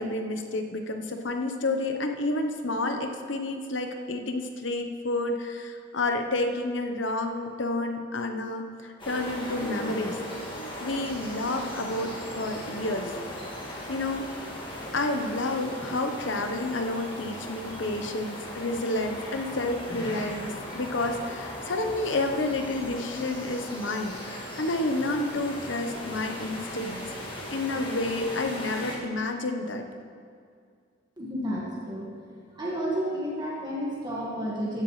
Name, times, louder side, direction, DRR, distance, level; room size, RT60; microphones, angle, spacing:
voice 1, 0.0-10.2 10.8-13.1 13.9-14.3 14.9-27.0 27.5-29.8, left 2 dB, 75° left, 5 dB, 1.0 m, -30 dB
sound 1, 9.0-29.0, equal, 25° left, 2.2 m, -38 dB
voice 2, 31.2-32.1 32.5-34.8, equal, 25° right, -5 dB, 1.8 m, -31 dB
15.0 x 10.5 x 3.3 m, 2.2 s
head